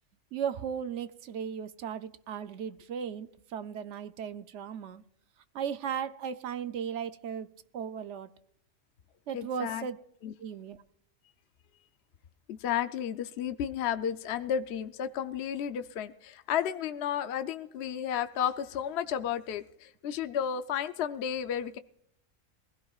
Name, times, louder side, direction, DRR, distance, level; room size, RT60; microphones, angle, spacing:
voice 1, 0.3-5.0 5.5-7.5 7.7-8.3 9.3-10.0 10.4-10.8, right 7 dB, 70° right, 0.9 m, -36 dB
voice 2, 9.3-9.8 10.2-10.3 12.5-21.8, left 9 dB, 60° left, 0.8 m, -32 dB
21.0 x 16.0 x 2.4 m
omnidirectional pair, 1.3 m